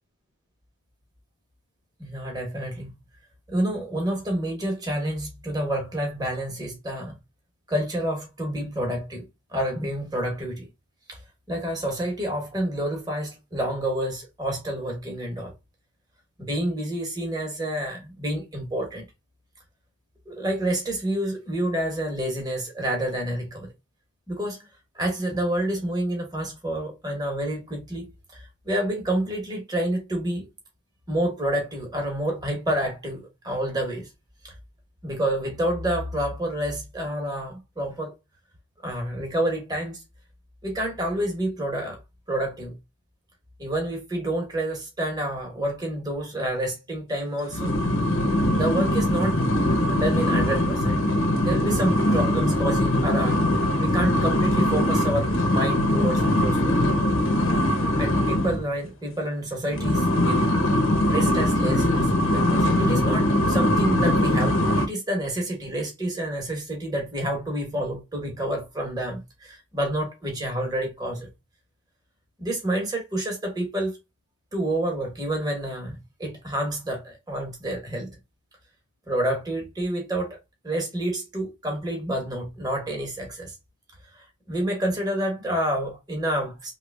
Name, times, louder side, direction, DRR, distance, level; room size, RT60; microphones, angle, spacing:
voice 1, 2.0-2.9 3.5-7.1 7.7-9.2 9.5-10.7 11.1-11.2 11.5-15.5 16.4-19.0 20.3-23.7 24.3-24.7 24.9-30.5 31.1-34.1 34.4-34.5 35.0-38.1 38.8-40.0 40.6-42.0 42.3-42.7 43.6-47.7 48.6-49.4 49.7-51.0 51.4-56.8 58.0-60.5 61.1-71.3 72.4-74.0 74.5-78.1 79.1-80.4 80.6-83.5 84.1-86.7, right 1 dB, 20° right, 1.1 m, -28 dB
sound 1, 47.5-58.6 59.7-64.9, left 1 dB, 70° left, 0.9 m, -22 dB
3.2 x 2.2 x 3.4 m
head